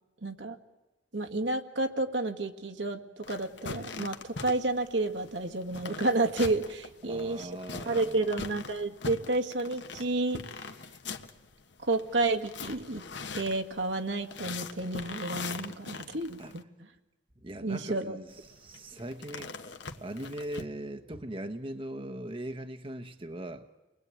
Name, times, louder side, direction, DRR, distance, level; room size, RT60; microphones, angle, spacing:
voice 1, 0.2-0.6 1.1-7.5 7.9-10.4 11.8-13.0 13.3-16.6 17.6-18.2, right 2 dB, 75° right, 1.9 m, -30 dB
sound 1, 3.2-16.6 18.3-20.6, left 4 dB, 65° left, 1.5 m, -42 dB
voice 2, 7.0-8.3 16.4-16.5 17.4-19.7 20.0-23.7, right 1 dB, 30° right, 1.0 m, -40 dB
30.0 x 21.5 x 8.9 m
head